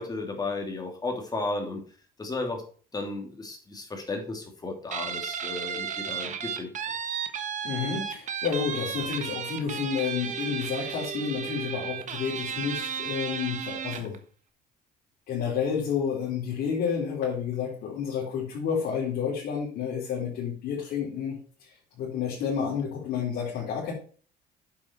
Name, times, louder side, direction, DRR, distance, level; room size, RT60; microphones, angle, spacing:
voice 1, 0.0-1.8 2.2-2.6 2.9-6.7, left 3 dB, 25° left, 2 dB, 2.9 m, -34 dB
Guitar, 4.9-14.2, right 7 dB, 45° right, 1.4 m, -34 dB
voice 2, 7.6-14.2 15.3-23.9, left 7 dB, 70° left, -5 dB, 4.0 m, -30 dB
8.8 x 7.4 x 4.6 m, 0.42 s
cardioid pair, 110°, 17 cm